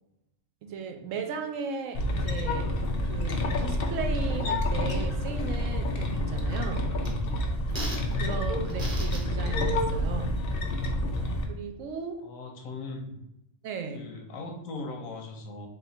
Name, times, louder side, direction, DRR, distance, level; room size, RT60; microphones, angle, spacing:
voice 1, 0.6-2.7 3.1-7.0 7.9-10.5 11.5-12.2 13.6-14.1, right 5 dB, 75° right, 6 dB, 0.9 m, -36 dB
sound 1, 1.9-11.4, left 1 dB, 55° left, 0.7 m, -28 dB
sound 2, 2.4-9.8, right 1 dB, 40° right, 1.1 m, -45 dB
voice 2, 12.2-13.2 13.9-15.7, left 3 dB, 90° left, 3 dB, 1.2 m, -39 dB
4.1 x 2.4 x 3.9 m, 0.85 s
omnidirectional pair, 1.4 m